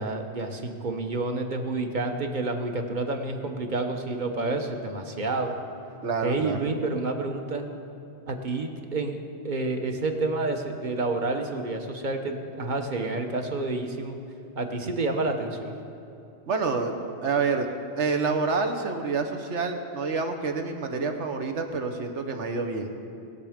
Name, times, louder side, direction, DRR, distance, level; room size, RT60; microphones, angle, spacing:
voice 1, 0.0-5.5 6.2-7.7 8.3-9.2 9.4-14.2 14.6-15.7, right 2 dB, 45° right, 4 dB, 1.1 m, -29 dB
voice 2, 6.0-6.6 16.5-16.9 17.2-17.7 18.0-22.9, right 4 dB, 85° right, 5 dB, 1.4 m, -27 dB
20.0 x 6.8 x 5.1 m, 2.9 s
omnidirectional pair, 1.2 m